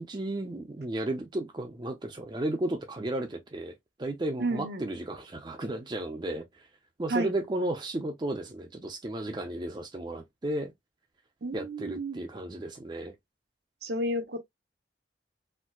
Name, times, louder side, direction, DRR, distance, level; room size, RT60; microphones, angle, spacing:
voice 1, 0.0-6.7 7.0-10.7 11.5-13.1, right 1 dB, 25° right, 0.5 m, -34 dB
voice 2, 4.4-4.9 7.1-7.3 11.4-12.2 13.8-14.4, right 1 dB, 60° right, 0.7 m, -31 dB
4.3 x 2.0 x 2.2 m
head